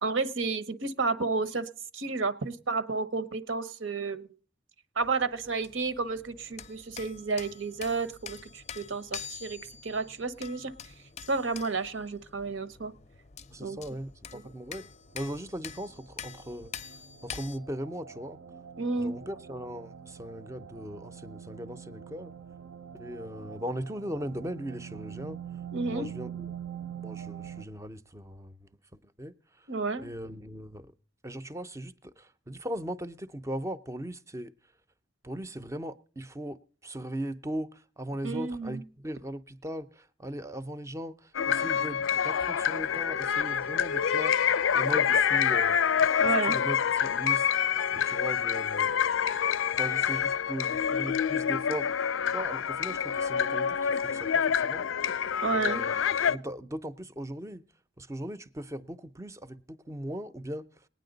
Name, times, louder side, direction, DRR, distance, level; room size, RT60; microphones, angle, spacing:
voice 1, 0.0-4.3 5.0-10.7 11.3-12.9 13.6-13.8 14.3-14.4 18.8-19.1 25.7-26.1 29.7-30.1 38.2-38.8 46.2-46.6 55.4-55.8, right 4 dB, 80° right, 0.9 m, -31 dB
sound 1, 5.0-17.6, left 8 dB, 35° left, 0.5 m, -46 dB
voice 2, 13.5-14.9 15.1-18.4 19.0-22.3 22.9-25.4 25.9-26.5 27.0-28.7 29.0-29.7 30.0-30.9 31.2-34.5 35.2-44.3 44.7-45.8 46.2-47.5 47.9-48.9 49.7-54.9 55.5-57.6 58.0-60.9, right 1 dB, 15° right, 0.5 m, -39 dB
sound 2, 15.4-27.6, right 8 dB, 60° right, 0.6 m, -44 dB
sound 3, 41.3-56.4, left 8 dB, 90° left, 0.5 m, -27 dB
19.5 x 9.2 x 3.9 m
head